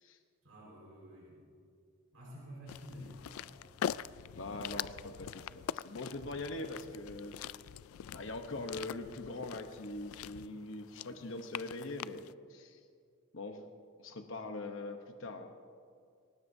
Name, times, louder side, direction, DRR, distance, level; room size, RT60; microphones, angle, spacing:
voice 1, 0.4-1.4 2.1-3.6, equal, 80° right, -4 dB, 4.6 m, -50 dB
sound 1, 2.7-12.3, left 9 dB, 85° left, 0.3 m, -43 dB
voice 2, 4.4-7.4 8.1-12.2 12.5-12.8 13.3-13.7 14.0-15.5, left 2 dB, 65° left, 5 dB, 0.9 m, -42 dB
23.0 x 19.0 x 2.7 m, 2.2 s
head